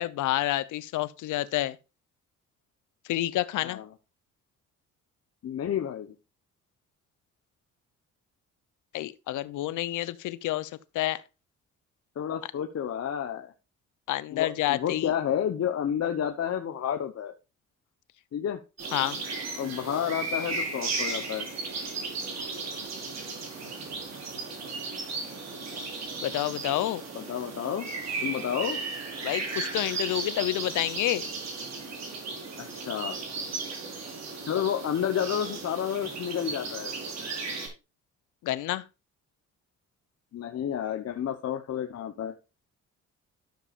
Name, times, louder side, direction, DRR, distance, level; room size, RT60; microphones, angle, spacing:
voice 1, 0.0-1.8 3.0-3.8 8.9-11.2 14.1-15.1 18.9-19.2 26.2-27.0 29.2-31.2 38.4-38.8, left 15 dB, 80° left, 0.8 m, -29 dB
voice 2, 5.4-6.1 12.2-13.5 14.3-17.3 18.3-18.6 19.6-21.5 27.1-27.9 28.2-28.8 32.6-33.2 34.4-37.0 40.3-42.3, left 9 dB, 55° left, 1.1 m, -30 dB
sound 1, 18.8-37.7, right 3 dB, 60° right, 5.0 m, -35 dB
13.0 x 6.9 x 2.5 m
cardioid pair, 90°, 30 cm